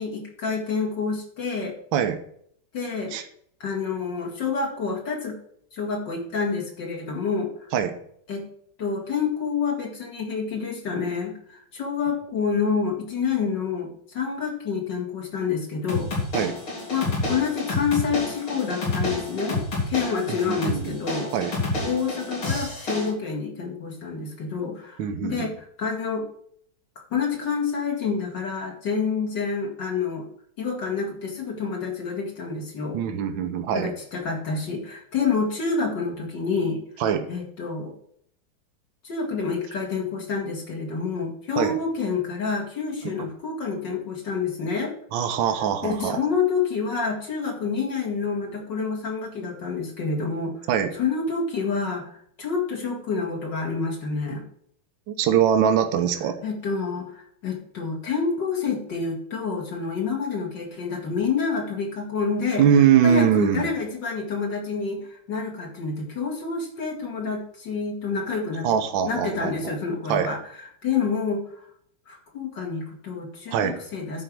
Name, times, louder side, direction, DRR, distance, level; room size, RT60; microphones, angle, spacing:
voice 1, 0.0-1.8 2.7-3.1 3.6-5.4 5.7-7.7 8.3-8.5 8.8-16.1 16.9-21.3 21.8-26.3 27.1-30.3 30.6-33.0 33.7-36.8 37.3-37.9 39.0-45.0 45.8-50.7 50.9-54.4 56.4-62.7 63.0-70.4 70.8-71.5 72.1-74.2, left 5 dB, 60° left, 0 dB, 2.3 m, -28 dB
sound 1, 15.9-23.1, left 2 dB, 85° left, 4.2 m, -29 dB
voice 2, 20.3-20.9 21.3-21.5 25.0-25.5 32.9-33.9 37.0-37.3 41.6-41.7 45.1-46.2 50.7-50.9 55.1-56.4 62.6-63.7 68.6-69.7 70.1-70.3 73.5-73.7, right 8 dB, 75° right, 7 dB, 1.6 m, -22 dB
10.5 x 4.6 x 6.1 m, 0.66 s
omnidirectional pair, 2.3 m